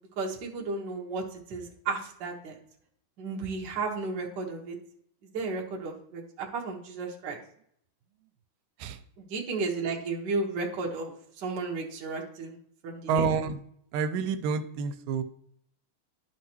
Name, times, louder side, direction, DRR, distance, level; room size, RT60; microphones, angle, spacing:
voice 1, 0.2-2.5 3.2-4.7 5.3-7.4 9.3-12.5 12.8-13.2, right 3 dB, 50° right, -1 dB, 1.3 m, -33 dB
voice 2, 13.1-13.6 13.9-15.2, right 5 dB, 90° right, 10 dB, 2.2 m, -28 dB
11.0 x 5.8 x 3.0 m, 0.68 s
omnidirectional pair, 3.8 m